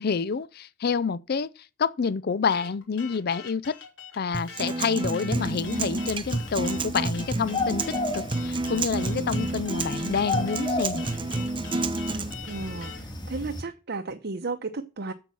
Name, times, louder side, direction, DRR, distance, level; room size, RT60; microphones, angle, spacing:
voice 1, 0.0-1.5 1.8-3.8 4.1-11.0, left 5 dB, 55° left, 0.5 m, -28 dB
sound 1, 2.5-13.0, left 6 dB, 70° left, 3.3 m, -43 dB
Acoustic guitar, 4.3-12.3, right 2 dB, 25° right, 0.8 m, -30 dB
sound 2, 5.3-13.6, left 3 dB, 25° left, 1.8 m, -35 dB
voice 2, 12.4-15.1, right 3 dB, 55° right, 0.8 m, -34 dB
8.3 x 6.9 x 6.1 m
head